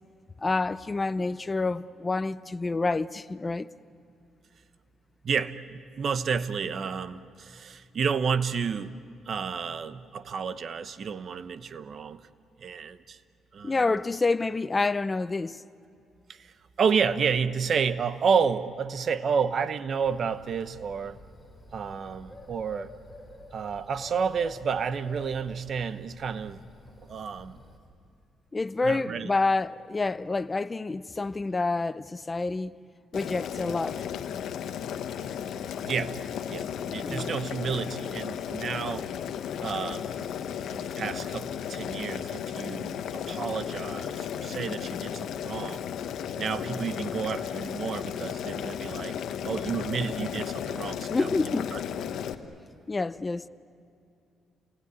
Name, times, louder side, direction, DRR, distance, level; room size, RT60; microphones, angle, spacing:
voice 1, 0.4-3.7 13.6-15.6 28.5-32.7 33.1-34.0 37.0-37.3 51.1-51.7 52.9-53.5, left 3 dB, 25° left, 0.6 m, -28 dB
voice 2, 5.2-9.0 9.3-12.2 12.6-13.2 13.5-13.8 16.3-21.2 21.7-22.9 23.5-26.6 27.1-27.6 28.8-29.3 35.8-36.2 36.5-39.1 39.6-40.3 40.7-45.8 46.4-49.2 49.4-51.3 51.7-51.8, right 6 dB, 55° right, 1.0 m, -30 dB
Bird, 20.0-27.8, left 2 dB, 10° left, 4.7 m, -49 dB
Boiling, 33.1-52.3, left 8 dB, 75° left, 1.2 m, -34 dB
29.0 x 20.0 x 9.7 m
cardioid pair, 90°, 0 cm